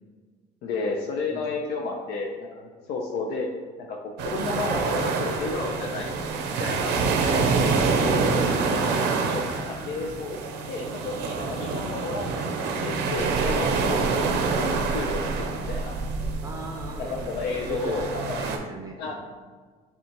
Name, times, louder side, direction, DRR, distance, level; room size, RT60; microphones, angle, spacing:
voice 1, 0.6-3.5 3.8-6.1 6.6-7.0 7.7-8.3 8.6-10.4 10.7-15.9 17.0-18.4 19.0-19.1, left 3 dB, 75° left, -1 dB, 0.5 m, -32 dB
sound 1, 4.2-18.6, right 4 dB, 90° right, 0.5 m, -26 dB
voice 2, 16.4-18.0 18.4-19.1, right 2 dB, 20° right, 1 dB, 0.5 m, -38 dB
6.5 x 2.4 x 2.9 m, 1.5 s
cardioid pair, 110°, 17 cm